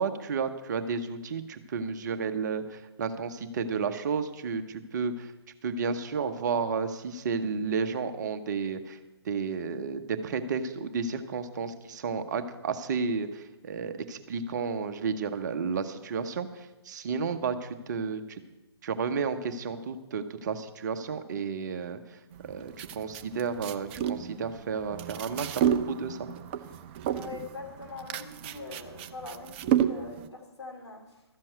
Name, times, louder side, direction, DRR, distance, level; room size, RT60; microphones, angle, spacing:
voice 1, 0.0-5.3 5.6-9.0 9.2-18.4 18.8-22.0 22.5-25.5 25.9-26.3, right 5 dB, 40° right, 9 dB, 1.0 m, -32 dB
sound 1, 22.3-30.3, right 9 dB, 25° right, 0.5 m, -31 dB
voice 2, 27.1-31.2, left 4 dB, 80° left, 1 dB, 3.1 m, -43 dB
13.0 x 7.5 x 7.9 m, 1.0 s
figure-of-eight pair, 130°, 14 cm